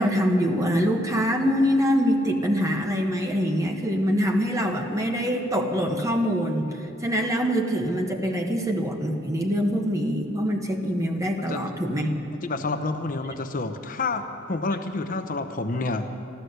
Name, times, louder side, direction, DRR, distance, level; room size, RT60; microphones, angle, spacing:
voice 1, 0.0-6.7 7.0-12.1, equal, 15° right, 3 dB, 1.2 m, -24 dB
voice 2, 12.4-16.2, left 3 dB, 40° left, 7 dB, 0.7 m, -29 dB
13.0 x 13.0 x 8.0 m, 2.8 s
head